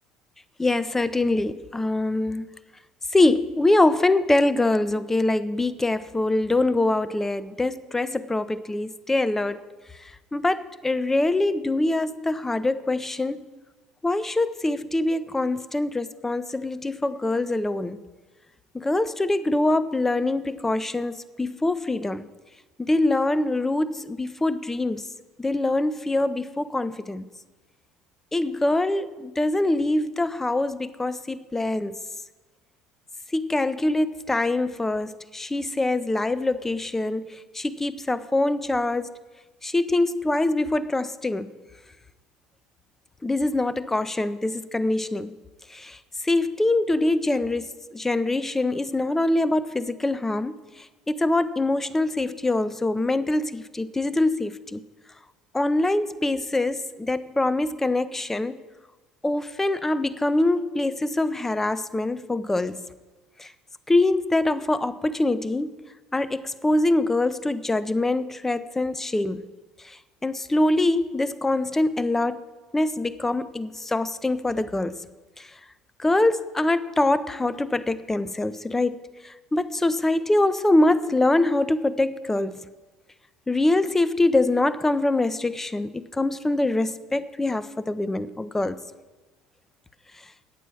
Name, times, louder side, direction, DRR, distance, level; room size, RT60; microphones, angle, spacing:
voice 1, 0.6-2.5 3.1-9.6 10.3-13.4 14.0-18.0 18.7-22.3 22.8-25.1 25.4-27.2 28.3-32.0 33.3-39.1 39.6-41.5 43.2-45.3 45.7-46.0 46.2-50.6 51.1-54.8 55.5-58.6 59.2-62.8 63.4-63.5 63.9-65.8 66.1-69.4 69.8-70.0 70.2-72.4 72.7-75.0 75.4-75.5 76.0-82.6 83.5-88.8, left 2 dB, 15° left, 0.6 m, -24 dB
9.2 x 9.0 x 6.2 m
hypercardioid pair, 65°, 2 cm